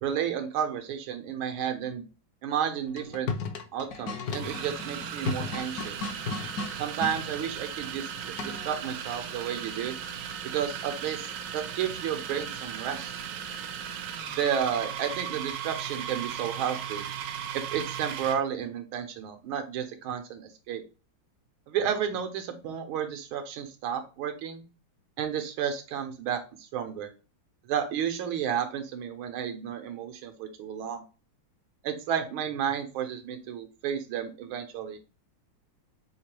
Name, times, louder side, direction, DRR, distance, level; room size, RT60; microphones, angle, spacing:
voice 1, 0.0-2.1 2.4-3.3 3.7-6.0 6.8-10.0 10.4-13.2 14.4-17.1 17.5-20.8 21.7-24.6 25.2-27.1 27.6-31.0 31.8-35.0, right 8 dB, 85° right, 6 dB, 1.6 m, -32 dB
sound 1, 2.9-7.2 8.4-8.8, left 4 dB, 70° left, 0.9 m, -35 dB
sound 2, 3.0-3.1 4.3-18.5, right 8 dB, 70° right, 1.1 m, -37 dB
5.4 x 2.9 x 3.0 m, 0.32 s
omnidirectional pair, 2.2 m